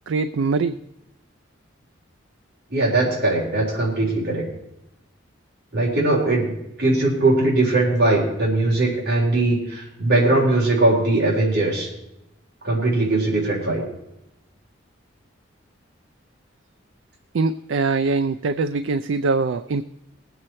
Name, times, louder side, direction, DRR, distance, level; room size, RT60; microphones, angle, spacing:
voice 1, 0.1-0.8 17.3-19.8, right 4 dB, 75° right, 10 dB, 0.4 m, -22 dB
voice 2, 2.7-4.4 5.7-6.5 6.8-11.9 12.6-13.8, right 2 dB, 50° right, -4 dB, 3.6 m, -20 dB
19.5 x 7.9 x 4.3 m, 0.86 s
head